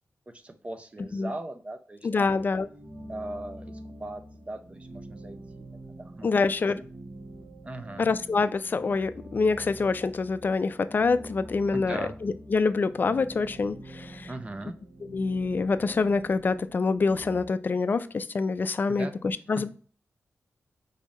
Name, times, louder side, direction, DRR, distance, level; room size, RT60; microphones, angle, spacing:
voice 1, 0.3-2.3 3.1-5.6 6.0-6.3 6.8-6.9 7.6-8.1 11.7-12.2 14.3-14.8 18.9-19.2, right 2 dB, 25° right, 8 dB, 0.5 m, -39 dB
voice 2, 2.0-2.7 6.2-6.8 8.0-14.3 15.0-19.7, left 4 dB, 40° left, 13 dB, 0.3 m, -26 dB
sound 1, 2.2-17.5, right 1 dB, 40° right, 0.9 m, -45 dB
4.8 x 2.7 x 4.1 m, 0.41 s
wide cardioid pair, 125°, 5 cm